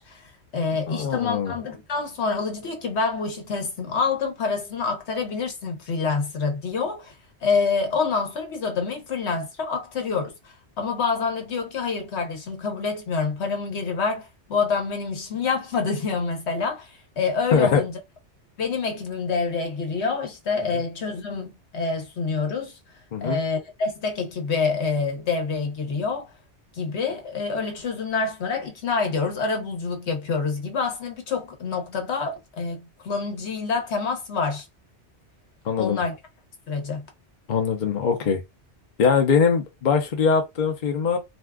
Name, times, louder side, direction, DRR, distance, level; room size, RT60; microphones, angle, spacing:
voice 1, 0.0-7.1 7.4-17.9 18.6-22.8 23.2-26.3 26.7-32.8 33.0-34.7 35.8-36.1 36.7-37.0, left 4 dB, 70° left, 1.1 m, -27 dB
voice 2, 0.9-1.5 17.5-17.8 20.7-20.8 23.1-23.4 35.6-36.0 37.5-38.4 39.0-41.2, left 6 dB, 50° left, 0.7 m, -22 dB
2.6 x 2.3 x 3.4 m
omnidirectional pair, 1.2 m